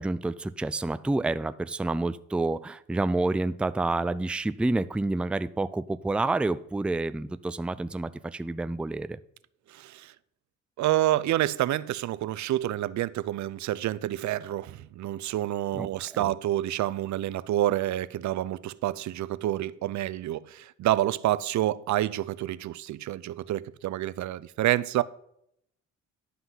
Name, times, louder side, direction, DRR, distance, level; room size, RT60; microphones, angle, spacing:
voice 1, 0.0-9.2 15.7-16.3, right 2 dB, 5° right, 0.4 m, -29 dB
voice 2, 9.7-10.1 10.8-25.0, right 14 dB, 70° right, 0.5 m, -28 dB
11.0 x 5.7 x 5.7 m
cardioid pair, 90°, 30 cm